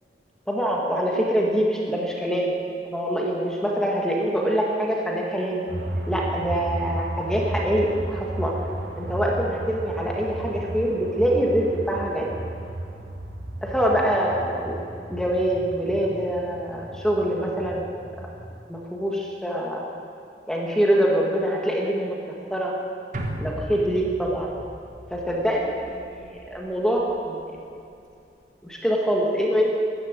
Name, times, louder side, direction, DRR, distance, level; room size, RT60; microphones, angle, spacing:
voice 1, 0.5-2.5 2.9-5.7 6.1-8.6 9.0-12.4 13.6-14.7 15.1-18.0 18.7-19.8 20.5-22.2 22.5-22.7 23.4-24.5 25.1-26.3 26.5-27.5 28.6-29.8, equal, 5° left, -2 dB, 1.8 m, -24 dB
sound 1, 5.7-18.6, right 1 dB, 75° right, 1.7 m, -34 dB
sound 2, 23.1-27.6 27.9-28.0, right 1 dB, 45° right, 1.4 m, -37 dB
13.5 x 11.0 x 8.2 m, 2.5 s
head